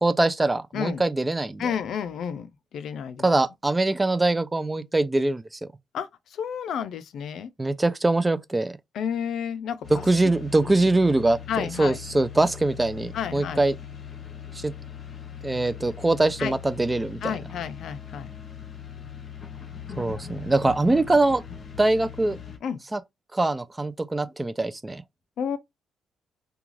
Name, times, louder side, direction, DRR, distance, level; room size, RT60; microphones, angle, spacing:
voice 1, 0.0-1.6 3.2-5.6 7.6-8.8 10.0-11.4 11.8-13.7 14.5-14.7 15.4-17.3 20.0-21.4 21.8-22.4 22.9-23.0 23.3-25.0, right 2 dB, 15° right, 0.3 m, -23 dB
voice 2, 1.6-3.3 5.9-7.5 8.9-10.3 10.6-10.9 11.5-12.0 13.1-13.6 16.4-16.5 17.2-18.3 22.6-22.8 25.4-25.6, left 8 dB, 70° left, 0.4 m, -31 dB
sound 1, 9.8-22.6, left 8 dB, 45° left, 0.8 m, -40 dB
2.4 x 2.3 x 3.1 m
cardioid pair, 90°, 0 cm